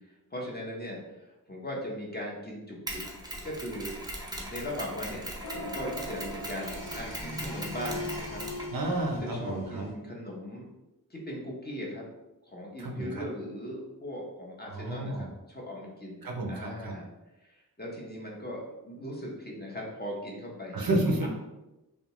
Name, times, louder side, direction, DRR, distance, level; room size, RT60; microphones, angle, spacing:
voice 1, 0.0-3.1 3.4-3.9 4.5-5.3 5.5-8.4 9.1-10.7 11.1-12.0 12.4-16.2 16.5-17.1 17.4-20.8 21.2-21.3, equal, 25° left, -3 dB, 0.7 m, -39 dB
Mechanisms, 2.9-9.2, right 1 dB, 10° right, 0.5 m, -40 dB
sound 1, 5.4-9.9, left 1 dB, 85° left, 0.8 m, -39 dB
voice 2, 8.7-9.9 12.8-13.3 14.7-15.3 16.2-16.9 20.7-21.3, right 2 dB, 65° right, 2 dB, 0.6 m, -31 dB
2.7 x 2.2 x 2.9 m, 0.98 s
wide cardioid pair, 85°, 38 cm